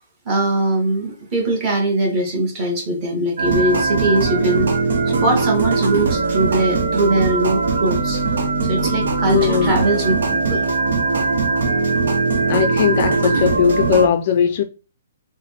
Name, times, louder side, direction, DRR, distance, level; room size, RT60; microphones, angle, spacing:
voice 1, 0.2-4.7 5.2-8.2 8.7-10.6, right 2 dB, 20° right, 1.3 m, -21 dB
sound 1, 3.4-14.1, right 3 dB, 75° right, 0.8 m, -20 dB
voice 2, 9.2-9.8 12.5-14.6, left 8 dB, 40° left, 0.4 m, -18 dB
4.1 x 2.1 x 3.3 m
hypercardioid pair, 165°, 0 cm